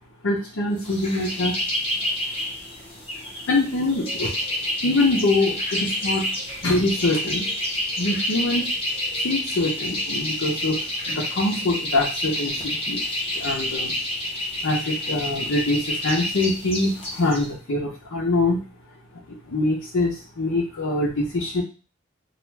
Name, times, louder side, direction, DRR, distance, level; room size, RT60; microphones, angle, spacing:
voice 1, 0.2-1.6 2.3-2.4 3.5-4.3 4.8-6.3 6.6-7.5 8.0-8.7 9.2-10.8 11.1-13.9 14.6-18.6 19.3-21.6, left 2 dB, 85° left, -4 dB, 0.7 m, -24 dB
sound 1, 0.8-17.5, left 1 dB, 30° left, 0.7 m, -29 dB
2.4 x 2.3 x 3.1 m, 0.34 s
head